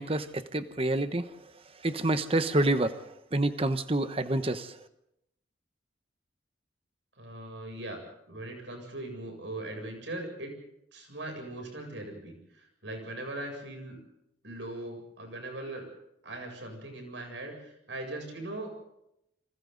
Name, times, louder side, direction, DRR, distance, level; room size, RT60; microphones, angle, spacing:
voice 1, 0.0-1.4 1.7-4.8, right 2 dB, 30° right, 10 dB, 1.1 m, -28 dB
voice 2, 7.2-8.0 8.3-10.5 10.9-14.0 14.4-15.9 16.2-18.7, right 1 dB, 75° right, 3 dB, 7.9 m, -40 dB
29.0 x 26.0 x 4.1 m, 0.83 s
head